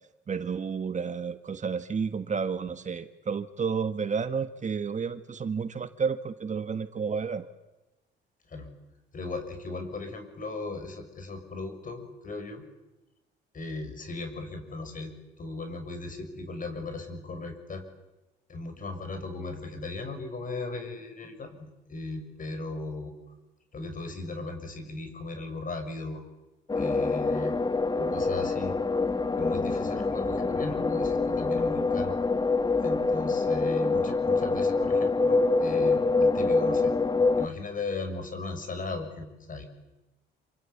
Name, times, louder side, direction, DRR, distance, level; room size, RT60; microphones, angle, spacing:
voice 1, 0.3-7.5, right 6 dB, 35° right, 10 dB, 1.5 m, -31 dB
voice 2, 9.1-12.7 13.5-17.8 18.5-23.1 23.7-26.2 26.8-27.6 28.0-28.8 29.4-32.2 32.8-36.9 37.4-39.6, left 3 dB, 45° left, 7 dB, 6.8 m, -37 dB
sound 1, 26.7-37.5, left 3 dB, 20° left, 1.3 m, -25 dB
28.0 x 25.0 x 8.6 m, 1.0 s
cardioid pair, 90°, 20 cm